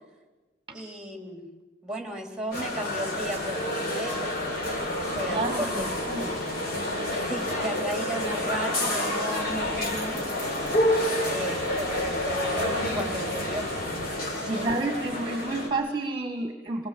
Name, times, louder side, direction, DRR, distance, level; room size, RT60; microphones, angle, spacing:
voice 1, 0.7-1.4 1.8-4.3 4.9-5.9 7.1-10.3 10.9-13.7 14.4-14.7, right 1 dB, 5° right, 3 dB, 3.4 m, -35 dB
sound 1, 2.5-15.7, left 1 dB, 55° left, 4.9 m, -29 dB
voice 2, 5.3-6.3 14.5-16.9, right 2 dB, 25° right, 5 dB, 1.6 m, -30 dB
27.0 x 20.0 x 7.6 m, 1.2 s
head